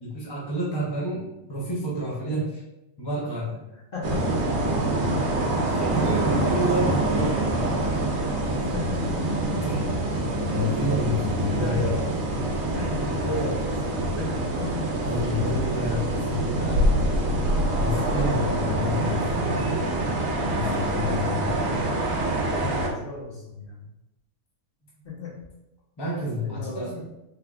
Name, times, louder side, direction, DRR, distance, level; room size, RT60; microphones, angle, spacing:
voice 1, 0.0-2.6 3.0-3.6 5.8-7.4 9.6-9.8 10.4-11.8 15.0-17.0 17.7-19.4 20.4-21.5 26.0-27.0, left 1 dB, 25° left, -5 dB, 0.6 m, -29 dB
sound 1, 4.0-22.9, right 1 dB, 70° right, 1.0 m, -25 dB
voice 2, 5.1-5.6 5.9-7.0 8.7-9.1 11.5-12.0 12.7-14.8 18.7-19.3 20.9-21.3 22.8-23.8 25.0-25.3 26.4-27.0, left 2 dB, 45° left, -5 dB, 1.1 m, -35 dB
3.5 x 3.2 x 2.4 m, 0.91 s
omnidirectional pair, 1.5 m